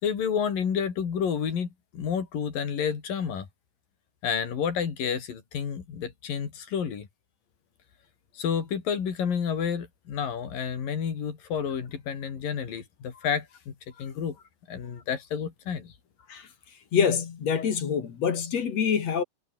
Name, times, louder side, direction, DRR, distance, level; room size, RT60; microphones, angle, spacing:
voice 1, 0.0-3.5 4.2-7.1 8.3-14.4 14.7-15.9, left 7 dB, 80° left, 5.1 m, -30 dB
voice 2, 16.9-19.2, left 7 dB, 55° left, 3.2 m, -26 dB
omnidirectional pair, 3.9 m